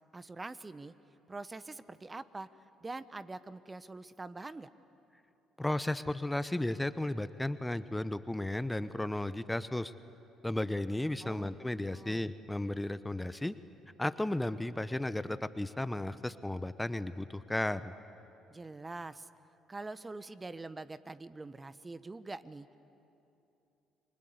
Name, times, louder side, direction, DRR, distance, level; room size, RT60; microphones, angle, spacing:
voice 1, 0.1-0.9 1.3-2.5 2.8-4.7 11.2-11.5 11.9-12.3 18.5-19.3 19.7-22.8, right 3 dB, 25° right, 15 dB, 1.0 m, -44 dB
voice 2, 5.6-9.9 10.4-13.5 14.0-17.9, left 1 dB, 10° left, 14 dB, 0.9 m, -34 dB
29.0 x 23.5 x 8.1 m, 2.8 s
hypercardioid pair, 50°, 0 cm